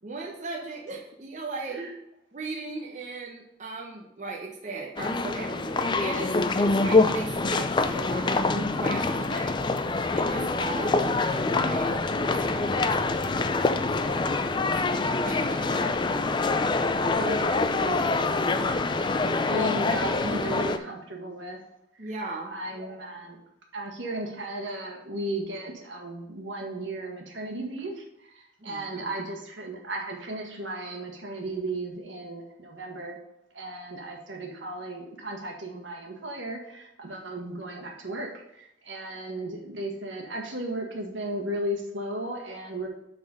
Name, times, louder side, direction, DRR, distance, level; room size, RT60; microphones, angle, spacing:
voice 1, 0.0-1.9 2.3-9.6 10.1-15.9 22.0-22.5 28.6-29.1, right 3 dB, 40° right, -1 dB, 0.9 m, -38 dB
sound 1, 5.0-20.8, left 3 dB, 25° left, 0.4 m, -25 dB
voice 2, 15.6-16.5 17.0-18.8 19.2-21.6 22.0-22.1 22.5-23.4 23.7-33.2 33.5-42.9, right 1 dB, 80° right, 1 dB, 1.7 m, -35 dB
7.8 x 4.1 x 5.4 m, 0.80 s
head